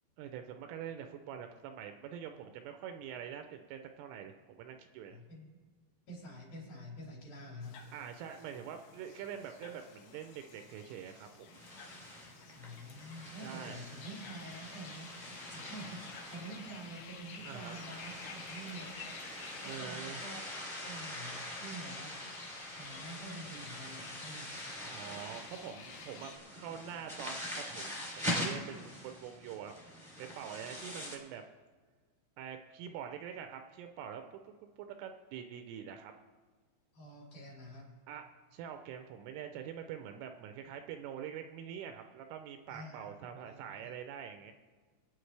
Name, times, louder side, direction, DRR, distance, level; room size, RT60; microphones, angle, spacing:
voice 1, 0.2-5.2 7.9-11.6 13.4-13.8 17.5-17.8 19.6-20.2 24.8-29.7 30.2-31.4 32.4-36.1 38.1-38.2 38.5-44.5, right 8 dB, 80° right, 6 dB, 3.0 m, -45 dB
voice 2, 5.1-5.6 6.1-7.8 12.5-18.9 19.6-22.2 22.7-24.6 36.9-37.9 42.7-43.1 43.5-43.9, right 1 dB, 50° left, -3 dB, 4.5 m, -48 dB
sound 1, 7.6-19.8, left 5 dB, 90° left, 4.1 m, -57 dB
sound 2, 11.5-31.2, left 1 dB, ahead, 1.6 m, -44 dB
sound 3, 14.0-26.4, left 5 dB, 70° left, 2.0 m, -51 dB
25.0 x 9.2 x 3.3 m, 1.4 s
omnidirectional pair, 6.0 m